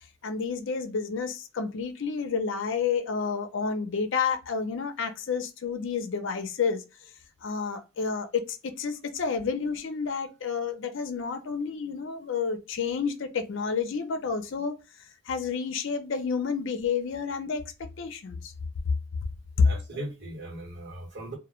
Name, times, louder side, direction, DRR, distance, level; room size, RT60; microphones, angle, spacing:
voice 1, 0.2-6.8 7.4-14.8 15.3-17.7 18.0-18.5, left 5 dB, 60° left, 0.5 m, -30 dB
voice 2, 19.6-21.4, right 2 dB, 55° right, 1.1 m, -39 dB
2.2 x 2.0 x 2.9 m
head